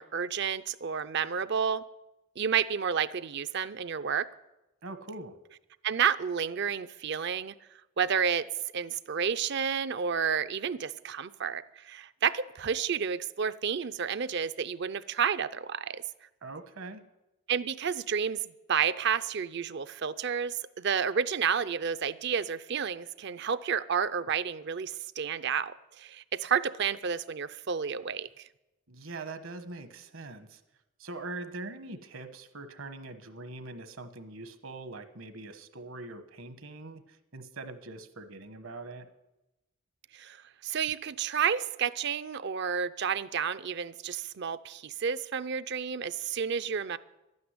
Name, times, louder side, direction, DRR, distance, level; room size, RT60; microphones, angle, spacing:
voice 1, 0.0-1.8 2.4-4.3 5.8-7.5 8.0-8.5 8.7-16.0 17.5-28.5 40.1-40.4 40.6-47.0, right 7 dB, 55° right, 14 dB, 0.5 m, -30 dB
voice 2, 4.8-5.4 16.4-17.0 28.9-30.6 31.0-39.1, right 2 dB, 70° right, 10 dB, 1.2 m, -42 dB
12.0 x 9.6 x 9.6 m, 0.98 s
head